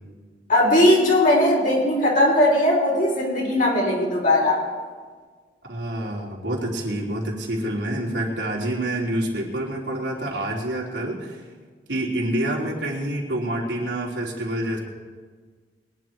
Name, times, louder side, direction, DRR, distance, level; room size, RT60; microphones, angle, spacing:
voice 1, 0.5-4.6, left 1 dB, 50° left, -3 dB, 4.4 m, -19 dB
voice 2, 5.6-11.4 11.9-14.8, right 1 dB, 85° right, -4 dB, 3.4 m, -27 dB
22.5 x 10.5 x 4.7 m, 1.5 s
head